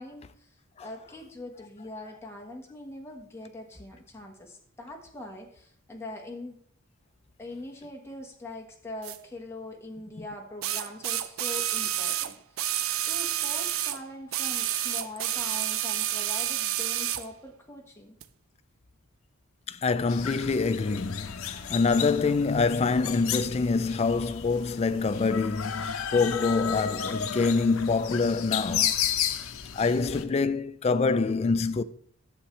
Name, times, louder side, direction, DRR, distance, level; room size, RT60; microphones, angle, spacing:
voice 1, 0.0-6.6 7.4-12.7 13.1-18.2, left 2 dB, 10° left, 1.3 m, -42 dB
sound 1, 9.0-9.2 10.6-14.0 14.3-17.3 18.2-18.3, right 12 dB, 70° right, 0.5 m, -29 dB
voice 2, 19.7-28.9 29.3-31.8, left 4 dB, 30° left, 0.3 m, -26 dB
sound 2, 20.1-30.2, left 9 dB, 75° left, 0.7 m, -33 dB
11.5 x 7.2 x 3.1 m
head